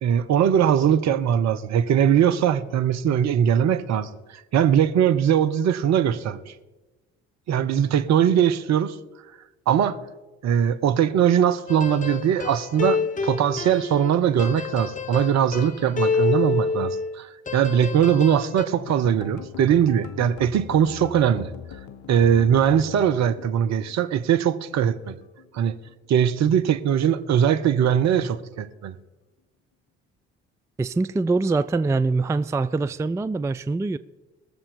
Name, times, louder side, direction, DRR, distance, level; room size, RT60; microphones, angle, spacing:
voice 1, 0.0-6.5 7.5-8.9 9.7-10.0 10.4-21.5 22.1-25.2 25.5-25.7 26.1-29.0, right 9 dB, 50° right, 0.9 m, -21 dB
sound 1, 11.7-17.2 17.5-18.7, left 5 dB, 25° left, 1.1 m, -28 dB
sound 2, 18.8-24.9 25.2-26.3 26.6-26.9 27.2-27.4, left 9 dB, 60° left, 1.1 m, -41 dB
voice 2, 30.8-34.0, right 3 dB, 10° right, 0.4 m, -24 dB
21.0 x 7.2 x 5.1 m
figure-of-eight pair, 50°, 34 cm